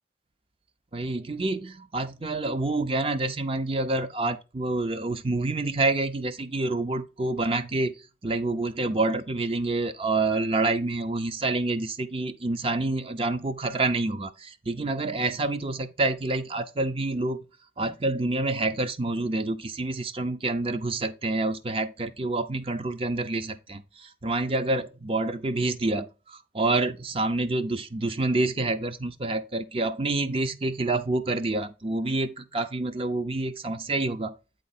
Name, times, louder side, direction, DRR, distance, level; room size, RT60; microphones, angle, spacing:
voice 1, 0.9-8.0 8.2-17.4 17.8-34.3, right 2 dB, 30° right, 0.6 m, -27 dB
8.7 x 3.8 x 4.2 m
head